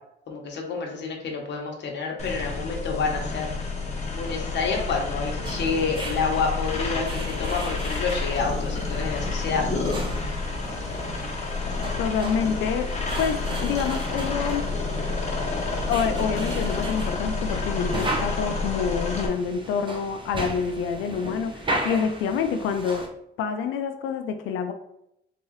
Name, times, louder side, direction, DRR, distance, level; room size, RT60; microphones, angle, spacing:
voice 1, 0.3-3.5 4.1-9.6, left 4 dB, 60° left, 1 dB, 1.0 m, -28 dB
sound 1, 2.2-19.3, left 3 dB, 35° left, 1.0 m, -29 dB
sound 2, 5.4-23.1, right 1 dB, 25° right, 0.8 m, -36 dB
voice 2, 12.0-12.9 13.2-14.7 15.9-23.1 23.4-24.7, left 6 dB, 90° left, 7 dB, 0.4 m, -27 dB
3.6 x 2.9 x 3.1 m, 0.78 s
cardioid pair, 90°, 20 cm